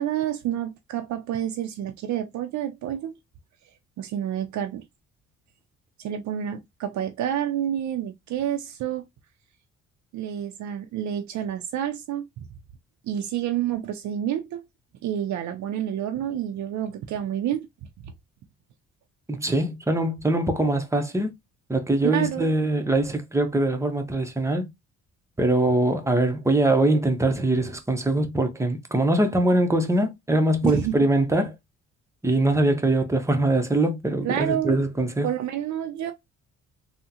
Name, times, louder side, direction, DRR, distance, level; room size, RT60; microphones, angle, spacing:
voice 1, 0.0-3.1 4.0-4.9 6.0-9.0 10.1-12.5 13.0-14.6 15.0-17.7 18.0-18.1 22.0-22.5 30.6-31.0 34.2-34.8 35.2-36.1, right 10 dB, 70° right, 0.5 m, -28 dB
voice 2, 19.3-21.3 21.7-24.7 25.4-31.5 32.2-35.3, right 1 dB, 10° right, 0.7 m, -22 dB
3.5 x 2.1 x 2.7 m
cardioid pair, 90°, 30 cm